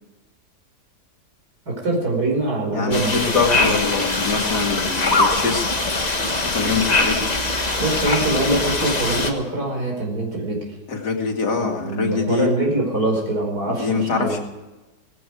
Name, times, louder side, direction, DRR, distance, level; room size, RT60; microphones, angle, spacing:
voice 1, 1.7-3.8 7.8-10.7 11.4-14.4, right 2 dB, 70° right, -1 dB, 5.7 m, -24 dB
voice 2, 2.7-5.7 6.5-7.4 10.9-12.5 13.7-14.4, left 4 dB, 85° left, 2 dB, 2.8 m, -24 dB
sound 1, 2.9-9.3, left 2 dB, 25° left, 1.5 m, -22 dB
18.0 x 15.5 x 4.9 m, 1.1 s
omnidirectional pair, 1.7 m